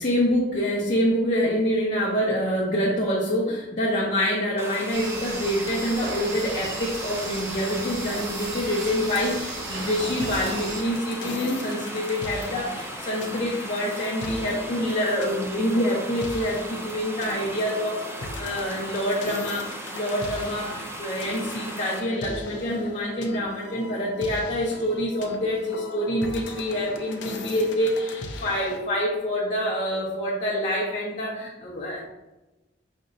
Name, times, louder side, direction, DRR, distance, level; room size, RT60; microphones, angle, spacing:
voice 1, 0.0-20.7 21.0-32.0, equal, 40° left, -5 dB, 0.7 m, -26 dB
sound 1, 4.6-22.0, right 1 dB, 15° right, 0.4 m, -37 dB
sound 2, 4.9-10.8, right 2 dB, 70° right, 0.9 m, -35 dB
sound 3, 10.1-28.8, left 3 dB, 80° left, 0.5 m, -38 dB
5.2 x 2.9 x 2.5 m, 1.0 s
head